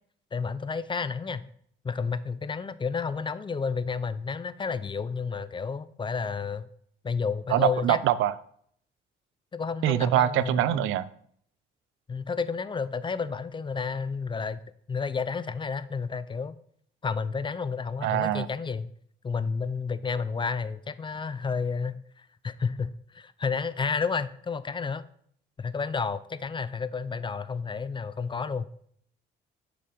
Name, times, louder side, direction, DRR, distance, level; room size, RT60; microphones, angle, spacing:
voice 1, 0.3-1.4 1.8-6.7 7.0-8.0 9.5-10.9 12.1-14.6 14.9-16.6 17.0-18.9 19.2-25.0 25.6-28.7, left 5 dB, 25° left, 15 dB, 0.4 m, -31 dB
voice 2, 7.5-8.3 9.8-11.1 18.0-18.5, right 13 dB, 85° right, 17 dB, 0.4 m, -24 dB
6.8 x 5.4 x 5.0 m, 0.64 s
cardioid pair, 90°, 20 cm